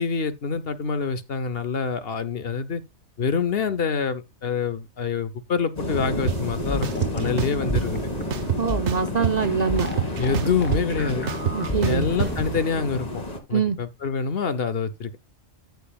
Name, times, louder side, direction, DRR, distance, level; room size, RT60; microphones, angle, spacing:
voice 1, 0.0-2.8 3.2-6.9 7.1-8.0 10.2-11.3 11.8-13.2 13.5-15.2, left 5 dB, 60° left, 1.0 m, -26 dB
sound 1, 5.8-13.4, left 1 dB, 35° left, 2.1 m, -31 dB
sound 2, 6.3-6.4 6.8-7.9 8.3-9.5 9.8-12.3, right 8 dB, 75° right, 1.2 m, -26 dB
sound 3, 6.6-12.6, equal, 10° left, 1.4 m, -32 dB
voice 2, 8.6-9.9 11.5-12.1 13.5-13.8, right 6 dB, 40° right, 0.8 m, -24 dB
14.0 x 7.0 x 2.3 m
omnidirectional pair, 1.2 m